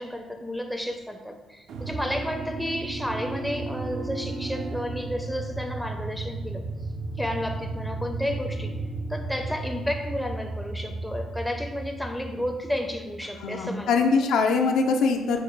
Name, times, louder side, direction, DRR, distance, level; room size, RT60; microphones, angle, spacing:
voice 1, 0.0-6.6 7.2-8.7 9.1-14.1, left 1 dB, 5° left, 3 dB, 0.4 m, -32 dB
sound 1, 1.7-13.9, right 2 dB, 75° right, 0.4 m, -34 dB
voice 2, 13.4-15.4, left 4 dB, 80° left, 4 dB, 0.4 m, -22 dB
4.6 x 2.1 x 4.4 m, 1.2 s
cardioid pair, 90°, 0 cm